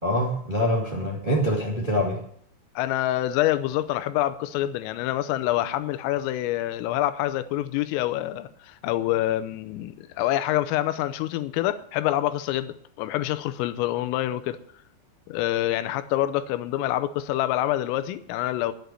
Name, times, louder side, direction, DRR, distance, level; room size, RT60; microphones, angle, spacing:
voice 1, 0.0-2.2, equal, 75° right, 0.4 m, -24 dB
voice 2, 2.8-14.6 15.3-18.7, left 14 dB, 85° left, 3.4 m, -26 dB
10.5 x 8.3 x 9.2 m
omnidirectional pair, 5.8 m